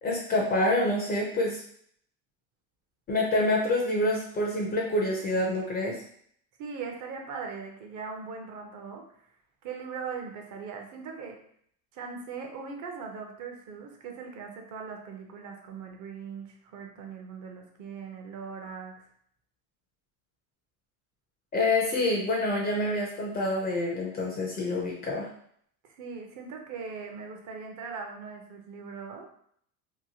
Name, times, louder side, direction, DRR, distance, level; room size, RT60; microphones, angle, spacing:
voice 1, 0.0-1.6 3.1-6.0 21.5-25.3, left 2 dB, 20° left, -1 dB, 0.4 m, -27 dB
voice 2, 6.6-9.3 9.6-11.4 11.9-19.1 25.8-29.3, right 5 dB, 40° right, 2 dB, 0.6 m, -40 dB
2.9 x 2.1 x 2.7 m, 0.64 s
supercardioid pair, 110°, 45 cm